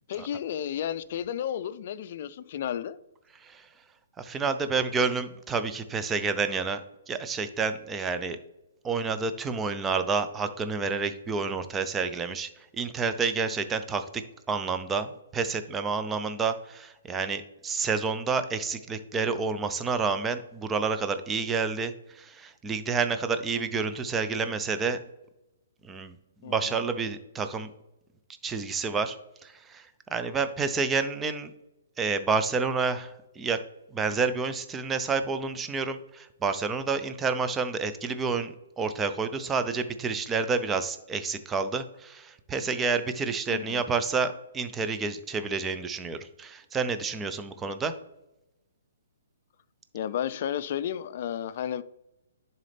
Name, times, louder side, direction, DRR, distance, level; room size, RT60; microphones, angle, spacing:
voice 1, 0.1-3.0 26.4-26.9 43.5-43.8 49.9-51.8, left 9 dB, 50° left, 0.4 m, -32 dB
voice 2, 3.4-3.7 4.2-6.8 7.1-8.4 8.8-25.0 25.8-26.2 26.4-27.7 28.4-31.5 32.0-33.6 33.9-47.9, right 4 dB, 15° right, 0.6 m, -29 dB
10.5 x 4.2 x 3.4 m
hypercardioid pair, 140°, 0 cm